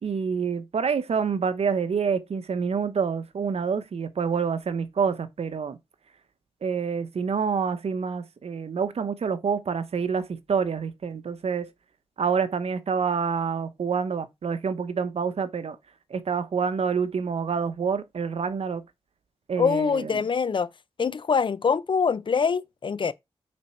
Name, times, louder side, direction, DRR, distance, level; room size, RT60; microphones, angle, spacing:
voice 1, 0.0-5.8 6.6-11.7 12.2-15.8 16.1-18.8 19.5-20.1, right 6 dB, 70° right, 0.9 m, -27 dB
voice 2, 19.6-20.7 21.0-23.1, left 5 dB, 50° left, 0.5 m, -24 dB
8.8 x 4.2 x 4.4 m
wide cardioid pair, 135°, 11 cm